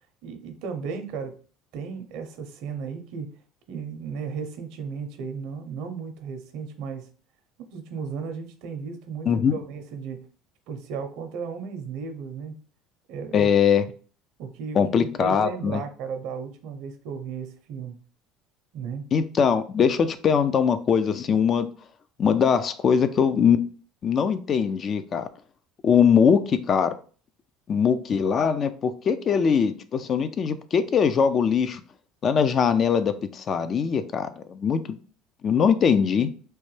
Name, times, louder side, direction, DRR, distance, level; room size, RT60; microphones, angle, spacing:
voice 1, 0.2-1.3 1.7-3.3 3.7-7.1 7.7-10.3 10.7-12.6 13.1-13.5 14.4-18.0 18.7-19.1, right 6 dB, 70° right, 7 dB, 0.6 m, -35 dB
voice 2, 13.3-13.8 14.7-15.8 19.1-21.7 22.2-23.6 24.0-25.3 25.8-26.9 27.7-31.8 32.2-35.0 35.4-36.3, left 7 dB, 40° left, 11 dB, 0.3 m, -21 dB
3.0 x 2.2 x 3.1 m, 0.40 s
supercardioid pair, 110°, 0 cm